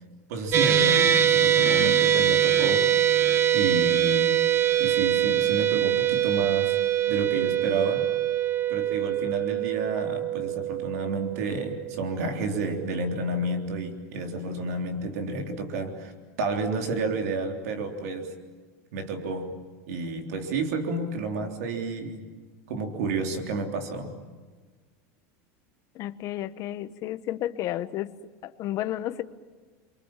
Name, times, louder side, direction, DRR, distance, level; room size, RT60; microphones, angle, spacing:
voice 1, 0.3-2.9 3.5-4.4 4.8-6.8 7.1-8.1 8.7-16.1 16.4-18.3 18.9-19.6 19.9-22.3 22.7-24.2, right 3 dB, 80° right, 4 dB, 3.5 m, -30 dB
sound 1, 0.5-12.9, right 10 dB, 30° right, 1.4 m, -23 dB
voice 2, 1.6-2.0 25.9-28.1 28.4-29.2, left 13 dB, 40° left, 11 dB, 1.2 m, -32 dB
29.5 x 24.0 x 7.5 m, 1.4 s
supercardioid pair, 150°, 8 cm